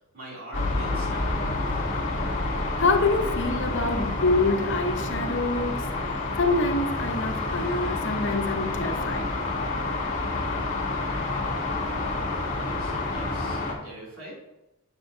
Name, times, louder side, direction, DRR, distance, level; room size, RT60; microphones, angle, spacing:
voice 1, 0.1-1.5 12.5-14.4, right 1 dB, 80° right, 3.1 m, -42 dB
sound 1, 0.5-13.7, left 2 dB, 40° left, 2.5 m, -28 dB
voice 2, 2.8-5.9 6.4-9.3, left 3 dB, 60° left, 1.0 m, -26 dB
9.2 x 8.1 x 2.8 m
head